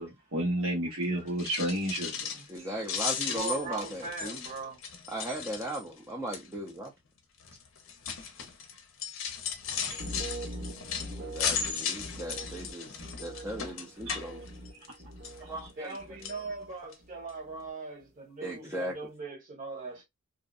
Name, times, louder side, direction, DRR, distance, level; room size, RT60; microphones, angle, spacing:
voice 1, 0.0-2.1 14.1-14.2, right 1 dB, 85° right, 1.0 m, -31 dB
sound 1, 1.3-2.6 2.8-6.0 6.3-6.7 7.4-14.9 15.2-16.4 16.9-17.0 17.3-17.4, left 7 dB, 65° left, 0.6 m, -36 dB
voice 2, 2.5-4.4 5.1-6.9 11.1-14.5 15.4-16.0 18.4-19.0, right 1 dB, 15° right, 0.5 m, -37 dB
voice 3, 3.3-4.8 15.8-20.0, right 4 dB, 40° right, 1.1 m, -39 dB
sound 2, 9.9-15.7 16.0-16.7 17.0-17.5, right 1 dB, 65° right, 1.2 m, -43 dB
2.6 x 2.1 x 2.3 m
head